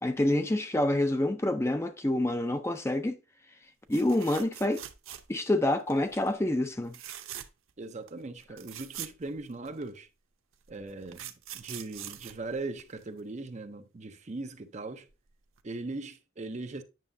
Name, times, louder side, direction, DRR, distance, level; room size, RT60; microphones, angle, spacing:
voice 1, 0.0-3.2 3.9-4.8 5.3-6.9, left 1 dB, 15° left, 0.4 m, -27 dB
sound 1, 3.9-5.5 5.9-6.2 6.9-7.7 8.1-8.2 8.4-9.9 10.7-13.2 15.1-15.3 15.6-15.7, right 11 dB, 90° right, 0.7 m, -43 dB
voice 2, 7.8-10.1 10.7-15.1 15.6-16.8, right 2 dB, 35° right, 0.5 m, -39 dB
9.1 x 6.2 x 2.6 m
head